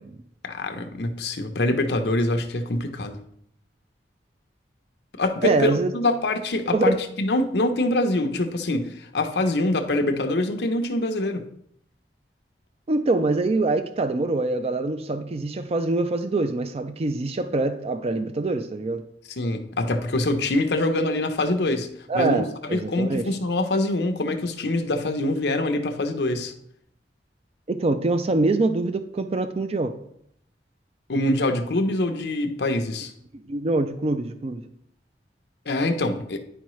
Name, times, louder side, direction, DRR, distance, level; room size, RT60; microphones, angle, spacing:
voice 1, 0.4-3.2 5.2-11.4 19.4-21.9 22.1-26.5 31.1-33.1 35.7-36.4, left 2 dB, 70° left, 6 dB, 0.7 m, -24 dB
voice 2, 5.4-5.9 6.7-7.0 12.9-19.0 22.1-23.3 27.7-29.9 33.5-34.6, right 2 dB, 35° right, 9 dB, 0.4 m, -24 dB
10.0 x 4.7 x 3.1 m, 0.70 s
head